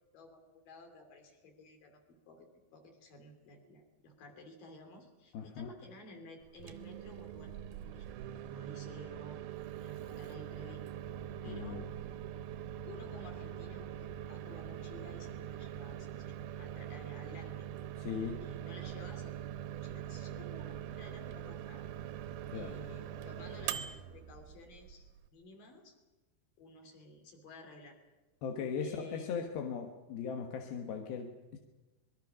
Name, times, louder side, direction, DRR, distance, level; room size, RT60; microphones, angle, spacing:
voice 1, 0.1-7.6 7.8-8.0 8.4-9.4 9.8-10.8 11.4-11.8 12.8-16.1 16.6-17.7 18.4-19.4 19.8-21.9 22.5-25.9 26.6-28.0 28.8-29.6, left 2 dB, 50° left, 4 dB, 4.5 m, -53 dB
voice 2, 5.3-5.7 11.5-12.1 18.0-18.5 22.5-22.8 28.4-31.6, left 6 dB, 65° left, 3 dB, 2.6 m, -39 dB
Microwave oven, 6.5-25.3, right 10 dB, 80° right, 2.2 m, -43 dB
25.0 x 21.5 x 6.2 m, 1.2 s
omnidirectional pair, 5.6 m